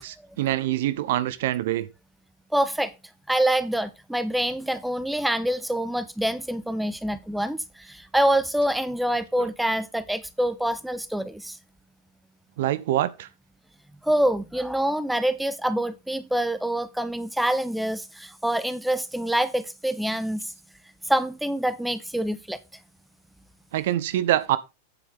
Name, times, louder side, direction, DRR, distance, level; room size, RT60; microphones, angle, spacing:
voice 1, 0.0-1.9 9.4-9.5 12.6-13.3 23.7-24.6, right 13 dB, 55° right, 0.6 m, -25 dB
voice 2, 2.5-2.9 3.3-11.6 14.0-20.5 21.1-22.6, right 1 dB, ahead, 0.7 m, -26 dB
9.0 x 7.9 x 3.6 m
figure-of-eight pair, 90°, 0 cm